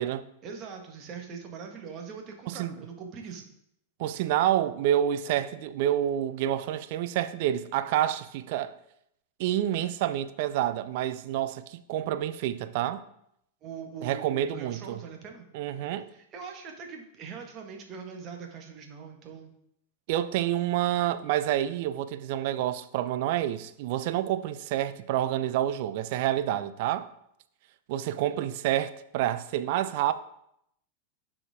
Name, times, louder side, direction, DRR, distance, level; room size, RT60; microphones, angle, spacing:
voice 1, 0.4-3.5 13.6-15.5 16.1-19.5, right 6 dB, 35° right, 1.7 m, -42 dB
voice 2, 4.0-8.8 9.4-13.0 14.0-15.0 15.5-16.1 20.1-27.1 27.9-30.1, right 12 dB, 50° right, 0.6 m, -28 dB
11.5 x 5.0 x 3.7 m
figure-of-eight pair, 90°, 0 cm